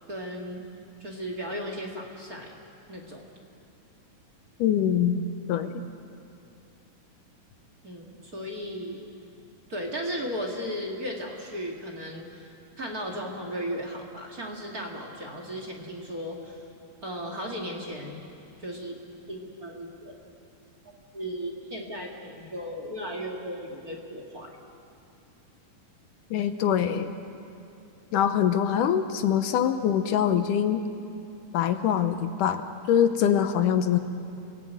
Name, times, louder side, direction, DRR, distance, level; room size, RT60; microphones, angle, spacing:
voice 1, 0.1-0.7 1.0-2.6 2.9-3.2 7.8-9.0 9.7-16.6 17.0-18.2 18.6-18.9 19.3-20.1 20.8-24.5, equal, 30° right, 1 dB, 2.3 m, -36 dB
voice 2, 4.6-5.2 5.5-5.8 26.3-27.1 28.1-30.8 31.5-32.6 32.9-34.0, left 9 dB, 75° left, 8 dB, 2.4 m, -24 dB
28.0 x 18.0 x 9.2 m, 2.7 s
omnidirectional pair, 3.9 m